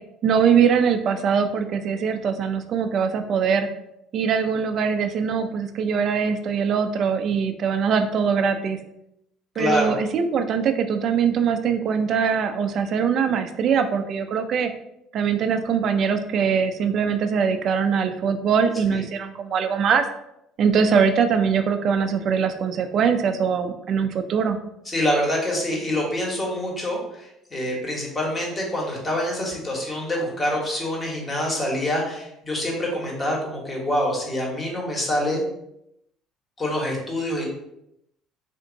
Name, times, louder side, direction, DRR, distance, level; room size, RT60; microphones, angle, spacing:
voice 1, 0.2-3.7 4.1-8.8 9.6-14.7 15.1-20.1 20.6-24.6, right 6 dB, 55° right, 8 dB, 0.4 m, -22 dB
voice 2, 9.5-10.0 18.8-19.0 24.8-35.4 36.6-37.5, left 1 dB, 25° left, -2 dB, 1.3 m, -26 dB
3.5 x 2.6 x 3.9 m, 0.81 s
cardioid pair, 110°, 0 cm